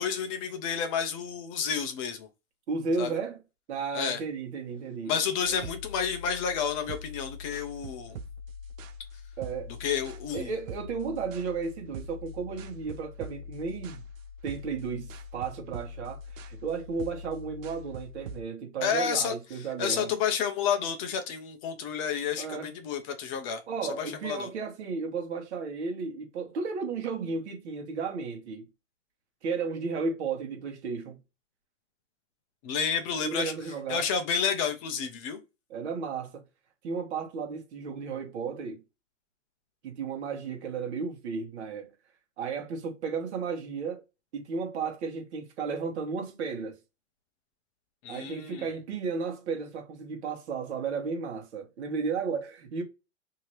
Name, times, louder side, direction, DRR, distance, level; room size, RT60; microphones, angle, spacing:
voice 1, 0.0-2.3 3.0-3.1 3.9-4.2 5.1-8.2 9.8-10.5 18.8-19.3 19.8-23.6 24.0-24.5 32.6-33.5 33.9-35.4 48.0-48.7, left 7 dB, 25° left, 0.5 m, -30 dB
voice 2, 2.7-3.4 3.7-5.2 5.5-5.6 9.4-9.7 10.3-14.0 14.4-20.1 22.4-22.7 23.7-28.7 29.4-31.2 33.2-34.1 35.7-36.4 36.8-38.8 39.8-41.9 42.4-44.0 44.3-46.8 48.1-52.8, right 5 dB, 60° right, 1.3 m, -34 dB
sound 1, 5.4-18.4, left 1 dB, 85° right, 0.7 m, -43 dB
2.8 x 2.8 x 3.1 m
hypercardioid pair, 145°, 38 cm